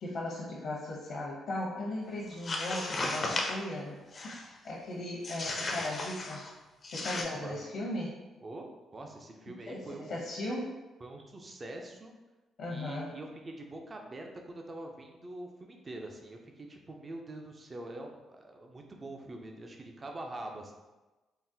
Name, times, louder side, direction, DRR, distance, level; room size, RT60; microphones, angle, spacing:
voice 1, 0.0-4.0 4.6-6.4 6.9-8.2 9.5-10.7 12.6-13.1, left 1 dB, 70° left, -4 dB, 0.7 m, -37 dB
sound 1, 2.3-3.6 4.1-4.5 5.2-6.5 6.8-7.2, left 2 dB, 40° left, 0.5 m, -35 dB
voice 2, 6.9-7.6 8.4-10.2 11.0-12.1 12.7-20.7, right 2 dB, 30° right, 2 dB, 0.4 m, -44 dB
3.8 x 2.1 x 2.6 m, 1.1 s
cardioid pair, 90°, 0 cm